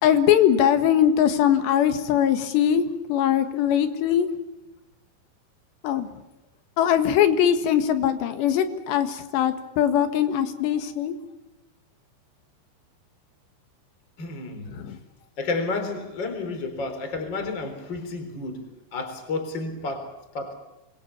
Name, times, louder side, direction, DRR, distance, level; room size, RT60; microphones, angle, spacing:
voice 1, 0.0-4.3 5.8-6.1 6.8-11.2 14.7-15.0, left 9 dB, 75° left, 9 dB, 3.7 m, -21 dB
voice 2, 14.2-14.8 15.4-20.5, left 3 dB, 25° left, 7 dB, 4.0 m, -31 dB
27.0 x 22.5 x 7.1 m, 0.99 s
omnidirectional pair, 5.3 m